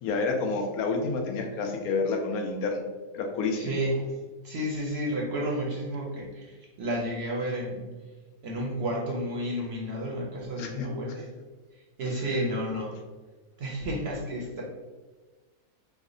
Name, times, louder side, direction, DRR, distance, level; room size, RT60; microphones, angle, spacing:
voice 1, 0.0-2.9 3.1-3.7 10.6-10.9, left 3 dB, 85° left, 3 dB, 1.1 m, -29 dB
voice 2, 3.5-4.2 4.4-7.9 8.4-11.3 11.7-12.9 13.6-14.6, equal, 60° right, -2 dB, 0.7 m, -31 dB
3.3 x 2.1 x 3.6 m, 1.3 s
omnidirectional pair, 1.5 m